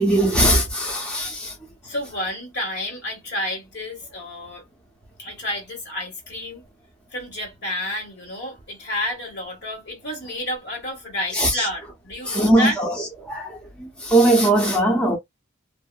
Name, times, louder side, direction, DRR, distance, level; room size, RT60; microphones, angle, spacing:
voice 1, 0.0-1.5 11.3-11.7 12.3-12.9 13.2-15.2, right 1 dB, 5° left, 0.6 m, -20 dB
voice 2, 1.8-4.6 5.2-6.6 7.1-12.8, left 1 dB, 55° left, 1.5 m, -30 dB
2.7 x 2.5 x 2.2 m
head